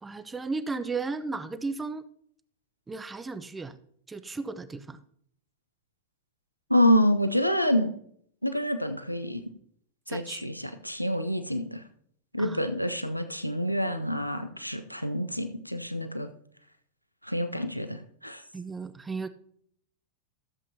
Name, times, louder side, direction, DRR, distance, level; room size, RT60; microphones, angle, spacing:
voice 1, 0.0-2.0 2.9-3.8 4.1-5.0 10.1-10.4 12.4-12.6 18.5-19.3, right 4 dB, 10° right, 13 dB, 0.5 m, -35 dB
voice 2, 6.7-8.0 8.4-9.4 10.1-11.8 12.3-16.3 17.2-18.4, equal, 90° left, 9 dB, 0.6 m, -27 dB
13.0 x 7.4 x 2.8 m, 0.65 s
figure-of-eight pair, 90°, 0 cm